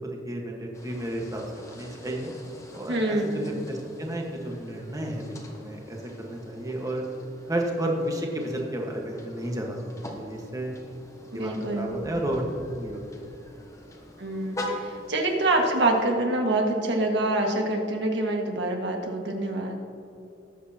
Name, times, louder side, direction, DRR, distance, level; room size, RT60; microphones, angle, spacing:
voice 1, 0.0-2.3 2.7-7.0 7.5-9.8 10.1-10.8 11.3-13.0, right 1 dB, 20° right, 0 dB, 1.4 m, -32 dB
sound 1, 0.7-16.0, left 1 dB, 20° left, 1.3 m, -43 dB
voice 2, 2.9-3.6 11.3-12.0 14.2-19.8, right 2 dB, 65° right, 1 dB, 1.7 m, -26 dB
19.0 x 8.1 x 2.9 m, 2.7 s
head